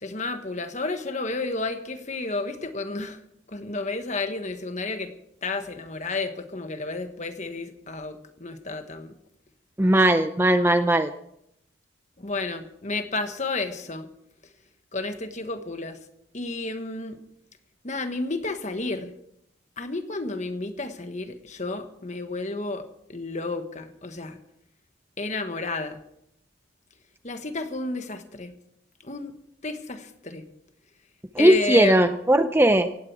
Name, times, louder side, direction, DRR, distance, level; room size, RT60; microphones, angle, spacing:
voice 1, 0.0-3.2 3.5-5.1 5.4-9.1 12.2-14.1 14.9-16.0 16.3-17.2 17.8-19.1 19.8-24.4 25.2-26.0 27.2-28.5 29.0-29.3 29.6-30.4 31.4-32.0, left 3 dB, 35° left, 8 dB, 1.4 m, -31 dB
voice 2, 9.8-11.1 31.3-32.9, right 1 dB, 10° right, 9 dB, 0.5 m, -18 dB
17.5 x 16.0 x 4.8 m, 0.77 s
head